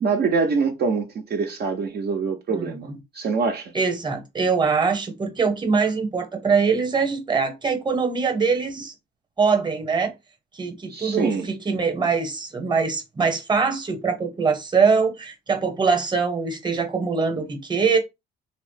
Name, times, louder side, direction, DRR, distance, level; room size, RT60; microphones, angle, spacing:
voice 1, 0.0-3.7 10.9-11.5, right 5 dB, 55° right, 0.5 m, -24 dB
voice 2, 2.5-3.0 3.7-8.9 9.4-10.1 10.5-18.0, right 5 dB, 20° right, 0.8 m, -23 dB
2.8 x 2.0 x 3.1 m
cardioid pair, 90°, 20 cm